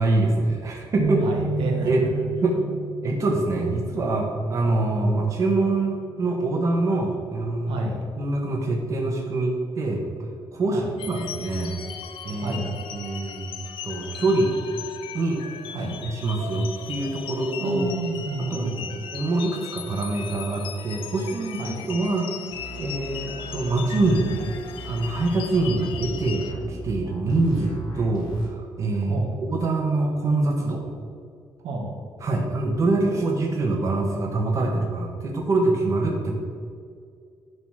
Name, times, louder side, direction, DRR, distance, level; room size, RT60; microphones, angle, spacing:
voice 1, 0.0-1.3 1.8-2.0 2.4-2.6 3.0-7.8 8.2-10.0 10.5-10.8 11.1-11.8 12.2-12.6 12.9-14.5 15.1-15.4 16.0-17.9 18.4-18.7 19.1-22.3 22.8-24.3 24.8-30.8 32.2-36.4, right 2 dB, 35° right, 0 dB, 1.3 m, -24 dB
sound 1, 1.0-5.2 5.7-6.0 6.8-7.2, right 4 dB, 65° right, 1.1 m, -32 dB
voice 2, 1.2-2.1 7.7-8.0 10.7-10.9 12.4-12.7 15.7-16.0 17.6-19.0 21.6-21.8 29.0-29.4 31.6-31.9, right 2 dB, 90° right, 0 dB, 1.6 m, -30 dB
sound 2, 11.0-26.5, left 8 dB, 90° left, 0.7 m, -38 dB
sound 3, 22.5-28.5, right 2 dB, 55° left, 2.4 m, -39 dB
11.0 x 4.0 x 6.3 m, 2.2 s
cardioid pair, 180°, 9 cm